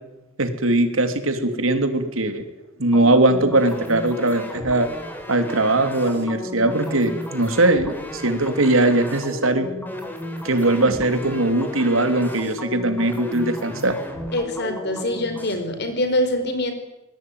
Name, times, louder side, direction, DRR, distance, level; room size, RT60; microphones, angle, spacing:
voice 1, 0.4-2.4 2.8-4.9 5.3-9.7 10.4-13.9, right 2 dB, 90° right, 8 dB, 3.2 m, -20 dB
sound 1, 2.9-15.5, left 1 dB, 10° left, 4.4 m, -34 dB
voice 2, 14.3-16.7, left 1 dB, 55° left, 8 dB, 4.7 m, -24 dB
24.0 x 20.5 x 9.6 m, 0.99 s
head